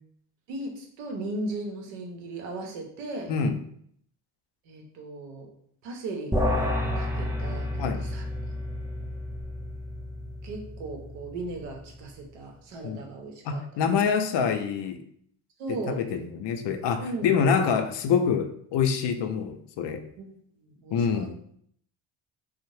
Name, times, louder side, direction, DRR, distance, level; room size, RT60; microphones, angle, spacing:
voice 1, 0.5-3.3 4.7-5.5 5.8-6.4 6.8-8.3 10.4-13.6 15.6-16.0 17.0-17.3 20.2-21.3, right 2 dB, 90° right, 2 dB, 0.7 m, -37 dB
sound 1, 6.3-11.8, left 1 dB, 5° right, 0.4 m, -31 dB
voice 2, 13.5-15.0 15.9-20.0 20.9-21.3, left 6 dB, 60° left, 7 dB, 0.5 m, -26 dB
2.6 x 2.0 x 3.1 m, 0.65 s
supercardioid pair, 65°, 50 cm